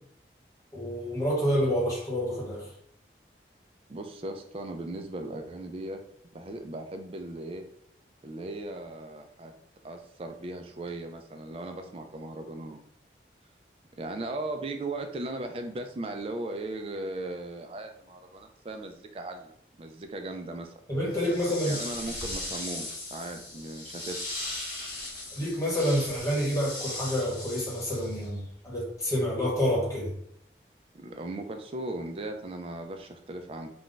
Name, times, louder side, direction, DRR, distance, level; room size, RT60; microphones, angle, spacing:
voice 1, 0.7-2.7 20.9-21.8 25.4-30.1, equal, 20° left, -5 dB, 1.0 m, -28 dB
voice 2, 3.9-6.0 6.3-7.6 8.2-9.5 9.8-12.8 14.0-20.7 21.7-24.3 30.9-33.7, right 2 dB, 30° right, 5 dB, 0.3 m, -37 dB
sound 1, 21.1-28.4, left 2 dB, 55° left, 0.9 m, -38 dB
2.4 x 2.2 x 3.8 m, 0.67 s
head